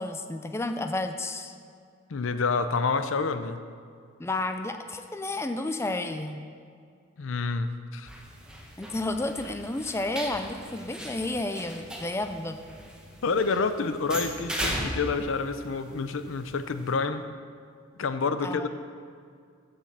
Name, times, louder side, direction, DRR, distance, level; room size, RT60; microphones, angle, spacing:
voice 1, 0.0-1.5 4.2-6.4 8.8-12.6 18.4-18.7, left 2 dB, 15° left, 7 dB, 0.4 m, -31 dB
voice 2, 2.1-3.6 7.2-8.1 13.2-17.2 18.0-18.7, left 4 dB, 85° left, 10 dB, 0.5 m, -28 dB
sound 1, 8.1-16.9, equal, 5° right, 1.0 m, -38 dB
7.3 x 6.9 x 7.2 m, 2.2 s
head